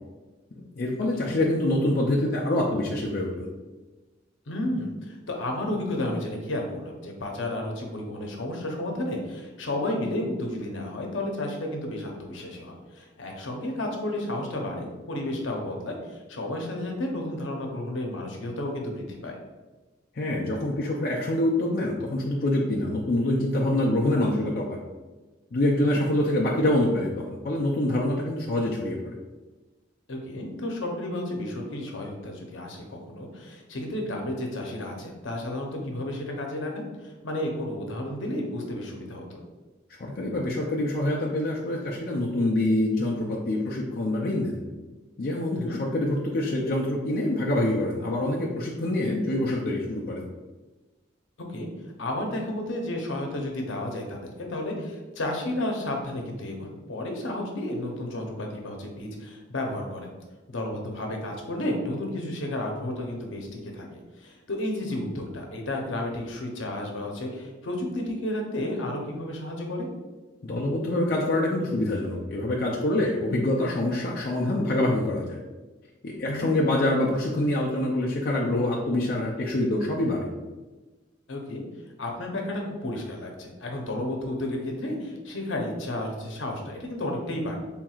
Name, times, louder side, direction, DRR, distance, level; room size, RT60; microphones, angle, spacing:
voice 1, 0.5-3.5 20.1-24.8 25.5-29.1 40.0-44.6 45.2-50.3 70.4-75.4 76.0-80.3, left 1 dB, 50° left, -3 dB, 0.4 m, -25 dB
voice 2, 4.5-19.4 25.8-26.0 30.1-39.4 45.5-45.8 51.4-51.7 52.0-60.1 60.5-69.9 76.3-76.5 81.3-81.6 82.0-87.6, left 1 dB, 80° left, 1 dB, 0.8 m, -32 dB
4.5 x 3.5 x 2.4 m, 1.2 s
head